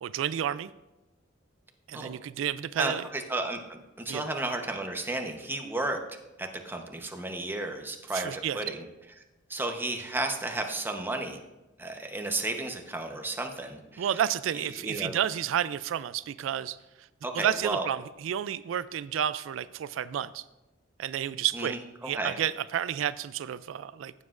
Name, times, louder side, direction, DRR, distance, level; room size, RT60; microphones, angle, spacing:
voice 1, 0.0-0.7 1.9-3.0 4.1-4.3 8.1-8.6 14.0-16.8 17.3-20.4 21.0-21.8 22.0-24.1, right 10 dB, 85° right, 16 dB, 0.3 m, -31 dB
voice 2, 2.8-6.0 6.4-8.8 9.5-11.4 11.8-14.1 14.5-15.1 17.2-17.9 21.5-22.4, right 2 dB, 10° right, 3 dB, 0.9 m, -33 dB
15.5 x 7.3 x 2.5 m, 1.0 s
head